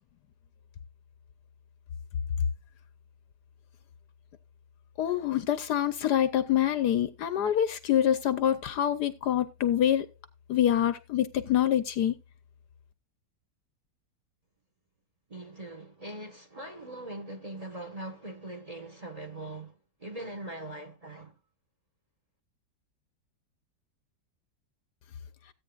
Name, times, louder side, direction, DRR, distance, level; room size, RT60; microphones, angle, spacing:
voice 1, 5.0-10.1 10.5-12.1, left 10 dB, 70° left, 1.2 m, -26 dB
voice 2, 15.3-21.3, right 1 dB, 20° right, 1.4 m, -41 dB
16.5 x 8.9 x 2.4 m
omnidirectional pair, 2.0 m